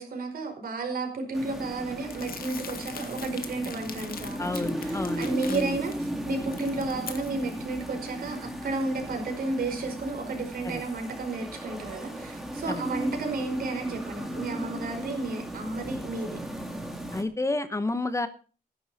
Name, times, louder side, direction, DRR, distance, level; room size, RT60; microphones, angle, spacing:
voice 1, 0.0-16.4, right 3 dB, 65° right, 3 dB, 5.0 m, -32 dB
sound 1, 1.3-17.2, right 1 dB, ahead, 2.8 m, -36 dB
Crumpling crinkling, 2.1-5.9 6.3-7.6, left 7 dB, 65° left, 2.0 m, -42 dB
voice 2, 4.4-5.8 10.6-10.8 12.7-12.8 17.1-18.3, left 2 dB, 20° left, 11 dB, 1.0 m, -30 dB
15.0 x 11.0 x 4.2 m, 0.38 s
wide cardioid pair, 130°, 16 cm